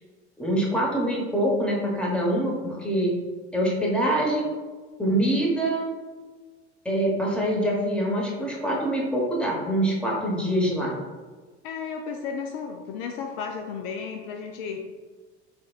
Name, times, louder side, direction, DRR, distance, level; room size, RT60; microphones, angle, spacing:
voice 1, 0.4-3.1 3.5-4.5 5.0-5.9 6.8-11.0, right 1 dB, 5° left, -3 dB, 1.0 m, -25 dB
voice 2, 11.6-14.9, left 6 dB, 60° left, 3 dB, 0.5 m, -33 dB
3.8 x 3.4 x 2.4 m, 1.4 s
hypercardioid pair, 70°, 34 cm